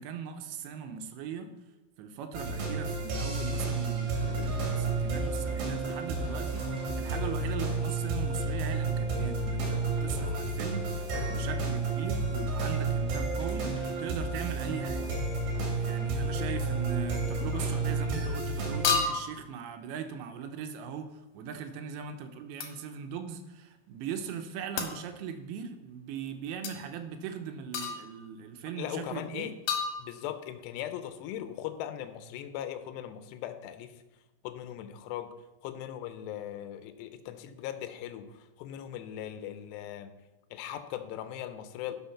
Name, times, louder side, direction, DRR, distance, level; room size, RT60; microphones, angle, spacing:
voice 1, 0.0-1.5 2.0-13.7 14.0-15.1 15.6-21.1 21.3-29.5, right 7 dB, 80° right, 7 dB, 3.0 m, -40 dB
sound 1, 2.3-19.0, right 3 dB, 60° right, 3.8 m, -31 dB
sound 2, 4.1-17.8, left 2 dB, ahead, 3.0 m, -48 dB
sound 3, 17.5-17.8 18.8-19.5 22.6-22.8 24.8-25.0 26.6-26.8 27.7-28.3 29.7-30.5, left 5 dB, 65° left, 2.7 m, -31 dB
voice 2, 28.8-29.5 30.0-33.9 34.4-35.3 35.6-40.1 40.5-42.0, left 11 dB, 80° left, 9 dB, 2.7 m, -39 dB
12.0 x 6.4 x 5.7 m, 1.1 s
omnidirectional pair, 5.3 m